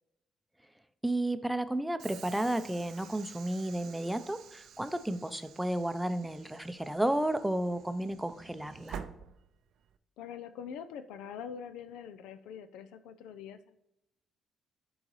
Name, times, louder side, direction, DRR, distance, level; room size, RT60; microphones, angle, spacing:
voice 1, 1.0-9.0, right 1 dB, 5° right, 11 dB, 0.6 m, -32 dB
Train / Sliding door, 2.0-10.0, right 8 dB, 70° right, 0.4 m, -50 dB
voice 2, 10.2-13.8, left 8 dB, 80° left, 11 dB, 0.4 m, -44 dB
10.5 x 3.9 x 3.1 m, 0.85 s
supercardioid pair, 55°, 0 cm